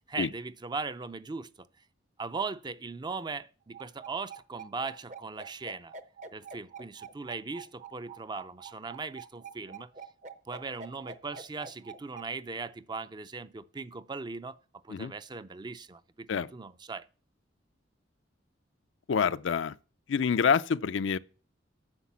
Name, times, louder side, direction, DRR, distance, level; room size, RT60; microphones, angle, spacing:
voice 1, 0.1-1.7 2.2-5.9 6.3-9.9 10.5-14.6 14.8-17.1, right 4 dB, 25° right, 0.4 m, -39 dB
sound 1, 3.7-12.3, right 5 dB, 40° right, 0.8 m, -45 dB
voice 2, 19.1-19.7 20.1-21.2, left 6 dB, 75° left, 0.4 m, -27 dB
9.7 x 6.7 x 7.2 m
head